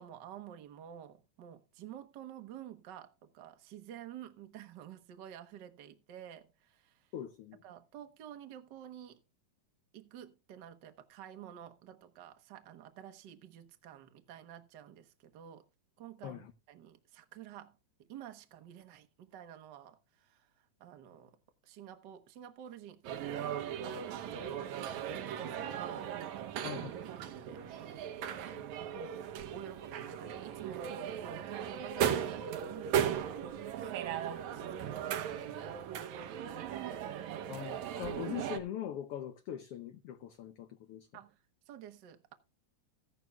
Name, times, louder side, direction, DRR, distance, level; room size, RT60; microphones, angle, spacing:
voice 1, 0.0-7.1 7.6-9.2 9.9-15.7 16.0-16.4 16.7-21.4 21.6-26.1 26.4-26.8 27.2-28.7 28.9-33.4 34.3-36.7 41.1-42.3, right 10 dB, 55° right, 1.3 m, -51 dB
voice 2, 7.1-7.6 16.2-16.5 26.6-26.9 37.5-41.1, left 11 dB, 70° left, 1.4 m, -42 dB
sound 1, 23.0-38.6, right 9 dB, 75° right, 2.3 m, -37 dB
16.0 x 11.0 x 2.4 m
omnidirectional pair, 3.5 m